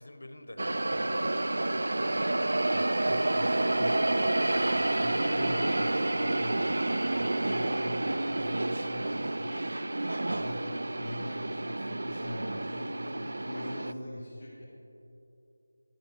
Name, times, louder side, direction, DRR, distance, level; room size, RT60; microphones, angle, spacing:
voice 1, 0.0-1.8, left 1 dB, 80° left, 7 dB, 1.0 m, -48 dB
sound 1, 0.6-13.9, right 2 dB, 75° right, 0.3 m, -29 dB
voice 2, 2.7-6.9 7.1-9.9 10.2-14.6, left 1 dB, 25° left, -14 dB, 2.5 m, -41 dB
13.0 x 9.9 x 3.5 m, 2.9 s
figure-of-eight pair, 170°, 0 cm